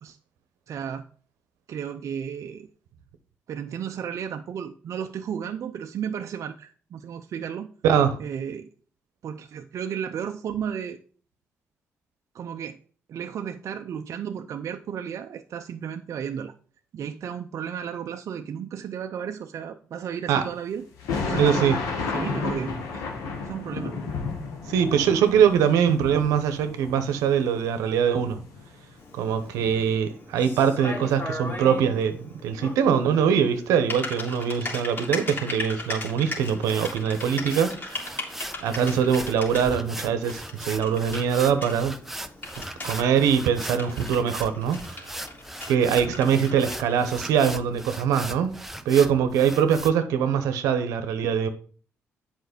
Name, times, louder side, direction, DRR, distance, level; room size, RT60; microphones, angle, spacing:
voice 1, 0.7-1.0 1.7-2.7 3.5-7.7 8.2-8.7 9.2-11.0 12.3-12.8 13.1-16.5 16.9-20.8 21.2-21.8 22.1-23.1 23.4-23.9, right 8 dB, 65° right, 0.6 m, -33 dB
voice 2, 7.8-8.2 20.3-20.4 21.4-21.8 24.7-28.4 29.1-38.2 38.6-42.0 42.8-45.2 45.7-48.5 48.8-51.5, right 8 dB, 90° right, 0.9 m, -23 dB
sound 1, 21.0-27.7 28.1-28.9 29.3-29.9, left 4 dB, 90° left, 1.9 m, -32 dB
Typing, 29.0-47.1, left 2 dB, 40° left, 3.2 m, -38 dB
sound 2, 36.4-49.9, right 1 dB, 5° right, 0.9 m, -39 dB
8.1 x 5.2 x 5.1 m
supercardioid pair, 60°, 6 cm